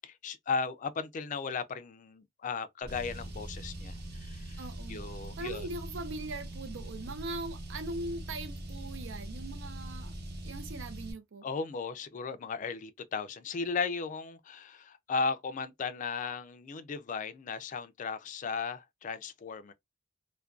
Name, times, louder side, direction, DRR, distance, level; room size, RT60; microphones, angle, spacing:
voice 1, 0.0-5.7 11.4-19.7, left 5 dB, 40° left, 0.3 m, -36 dB
sound 1, 2.8-10.8, equal, 25° right, 0.8 m, -47 dB
Car, 2.9-11.1, right 1 dB, 60° right, 0.8 m, -43 dB
voice 2, 4.6-5.0 5.4-10.1 10.4-11.5, right 2 dB, 85° right, 0.5 m, -40 dB
2.4 x 2.2 x 2.3 m
head